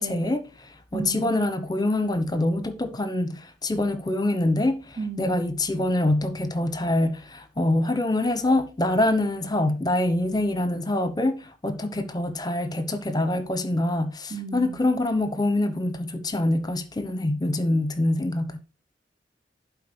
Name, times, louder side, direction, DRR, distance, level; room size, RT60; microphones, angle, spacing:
voice 1, 0.0-18.6, left 1 dB, 25° left, 1.0 m, -25 dB
voice 2, 0.9-1.4 5.0-5.4 14.3-14.8, right 4 dB, 45° right, 1.5 m, -34 dB
11.5 x 4.8 x 5.4 m
head